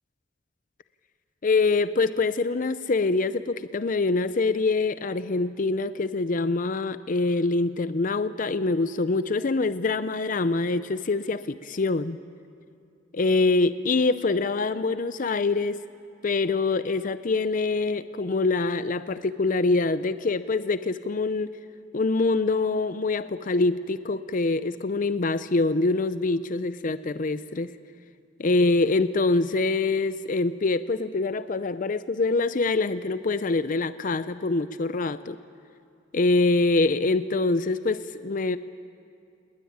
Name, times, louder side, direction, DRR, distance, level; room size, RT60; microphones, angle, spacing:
voice 1, 1.4-12.2 13.1-15.8 16.2-21.5 21.9-27.7 28.4-35.4 36.1-38.6, left 3 dB, 45° left, 13 dB, 0.5 m, -25 dB
20.5 x 19.5 x 9.5 m, 2.4 s
head